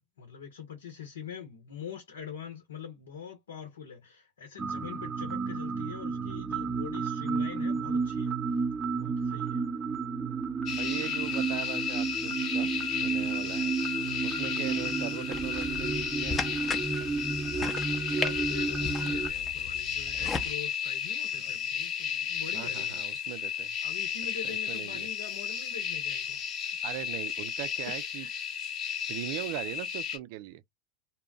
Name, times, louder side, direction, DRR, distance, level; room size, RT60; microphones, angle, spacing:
voice 1, 0.0-8.3 9.0-9.6 13.2-13.3 14.1-14.3 17.9-23.0 23.8-26.4 28.2-28.3, left 8 dB, 85° left, 0.8 m, -44 dB
sound 1, 4.6-19.3, right 5 dB, 25° right, 0.7 m, -32 dB
sound 2, 10.7-30.2, left 8 dB, 50° left, 1.0 m, -34 dB
voice 2, 10.8-13.7 14.2-16.6 21.3-21.6 22.5-23.8 24.4-25.1 26.8-28.3 29.1-30.6, right 15 dB, 65° right, 0.3 m, -40 dB
sound 3, 15.3-20.5, left 4 dB, 25° left, 0.7 m, -37 dB
2.2 x 2.0 x 3.6 m
hypercardioid pair, 85°, 0 cm